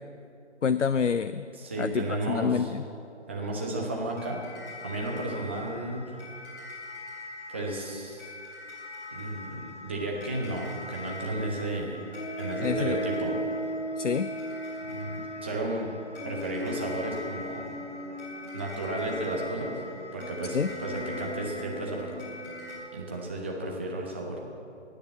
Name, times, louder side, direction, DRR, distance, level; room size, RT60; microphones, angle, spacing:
voice 1, 0.6-1.5 1.8-2.8 12.6-13.0 14.0-14.3 20.5-20.7, left 6 dB, 85° left, 13 dB, 0.5 m, -27 dB
voice 2, 1.6-2.7 3.3-4.4 4.8-6.3 7.5-8.3 9.1-12.1 12.4-13.4 14.8-16.0 16.2-17.6 18.5-19.8 20.1-22.1 22.9-24.4, right 1 dB, 10° right, -1 dB, 0.7 m, -33 dB
sound 1, 4.2-22.8, equal, 20° left, 3.8 m, -38 dB
19.0 x 6.8 x 7.3 m, 2.5 s
figure-of-eight pair, 145°, 35 cm